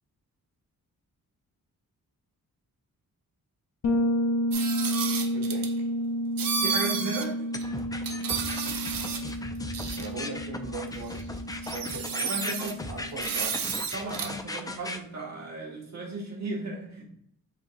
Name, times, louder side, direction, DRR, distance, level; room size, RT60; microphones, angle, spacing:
Bass guitar, 3.8-13.5, equal, 50° left, 0.7 m, -31 dB
sound 1, 4.5-5.7 6.4-7.3 7.6-7.7 8.0-9.3 9.7-10.1 11.1-11.2 11.5-12.7 13.2-14.3, right 6 dB, 65° right, 0.7 m, -31 dB
voice 1, 5.3-5.7 9.9-11.4 11.7-12.3 12.9-13.5, right 3 dB, 85° right, 0 dB, 1.5 m, -39 dB
voice 2, 6.6-7.3 12.3-12.8 13.9-17.0, right 2 dB, 45° right, -4 dB, 1.5 m, -35 dB
sound 2, 7.5-15.0, left 2 dB, 10° left, 0.3 m, -37 dB
5.2 x 3.7 x 2.4 m, 0.69 s
wide cardioid pair, 115°, 36 cm